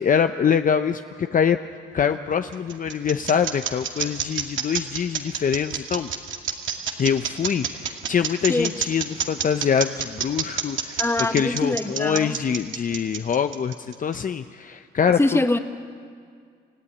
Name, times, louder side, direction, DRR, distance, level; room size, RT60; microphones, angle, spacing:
voice 1, 0.0-1.6 1.9-6.1 7.0-13.7 14.0-15.4, left 7 dB, 40° left, 8 dB, 0.8 m, -24 dB
sound 1, 2.1-14.1, right 8 dB, 75° right, 2.3 m, -28 dB
voice 2, 11.0-12.4 15.2-15.6, left 2 dB, 10° left, 7 dB, 1.6 m, -23 dB
28.5 x 15.0 x 9.9 m, 2.2 s
cardioid pair, 90°, 20 cm